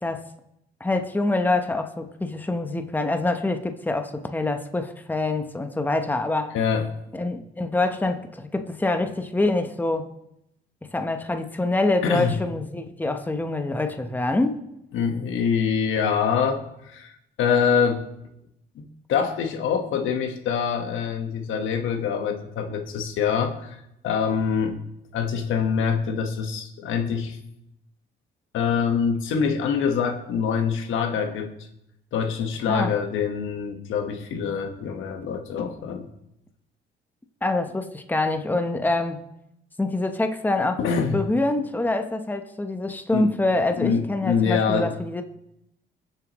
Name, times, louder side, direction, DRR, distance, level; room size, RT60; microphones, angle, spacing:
voice 1, 0.8-6.5 7.1-10.1 10.8-14.6 32.7-32.9 37.4-39.2 39.8-40.8 41.1-45.2, left 2 dB, 10° left, 0.9 m, -25 dB
voice 2, 6.5-6.9 12.0-12.4 14.9-17.1 17.4-18.1 18.7-24.8 25.1-27.4 28.5-31.5 32.1-36.1 40.8-41.2 43.1-43.3 43.7-44.9, left 6 dB, 85° left, 1.4 m, -25 dB
21.5 x 7.4 x 3.1 m
cardioid pair, 90°, 20 cm